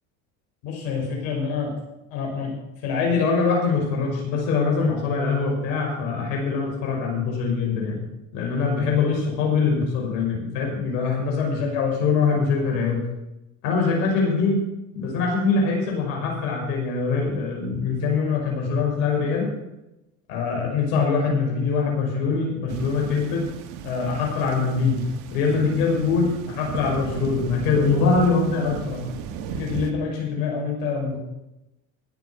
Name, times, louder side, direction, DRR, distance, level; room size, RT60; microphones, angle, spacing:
voice 1, 0.6-1.7 2.1-2.5 2.8-8.0 8.3-13.0 13.6-14.6 14.9-19.5 20.3-23.4 23.8-25.0 25.3-29.0 29.5-31.2, left 4 dB, 70° left, -1 dB, 5.6 m, -23 dB
sound 1, 22.7-29.9, right 7 dB, 65° right, 1.7 m, -34 dB
20.0 x 7.1 x 5.9 m, 0.92 s
supercardioid pair, 105°, 39 cm